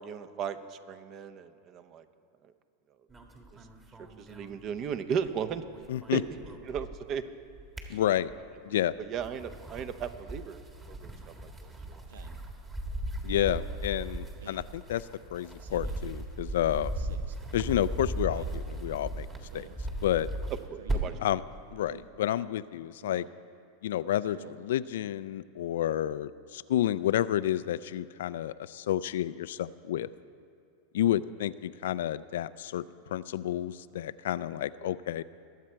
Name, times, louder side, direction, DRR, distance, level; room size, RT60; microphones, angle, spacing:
voice 1, 0.0-2.0 4.2-5.6 6.1-6.2 6.7-7.4 7.9-8.0 9.1-10.6 10.9-11.1 11.4-12.0 20.7-21.2 34.8-34.9, right 7 dB, 40° right, 11 dB, 0.8 m, -36 dB
sound 1, 3.1-5.3 5.5-7.1 7.5-8.6 9.1-21.3, right 1 dB, 20° right, 1.6 m, -37 dB
voice 2, 5.9-6.2 7.9-8.3 8.6-8.9 13.2-16.9 17.5-19.3 19.5-19.7 20.0-20.3 21.2-21.4 21.7-23.2 23.8-30.1 30.9-35.2, left 12 dB, 75° left, 16 dB, 0.3 m, -30 dB
Speech synthesizer, 12.1-12.4 13.2-13.6 14.4-14.7 15.6-16.0 16.9-17.4 18.2-18.6 19.5-19.8 20.7-21.0 21.9-22.1 23.0-23.4 24.2-24.6, right 7 dB, 85° right, 0.7 m, -50 dB
21.5 x 7.5 x 4.5 m, 2.5 s
hypercardioid pair, 110°, 0 cm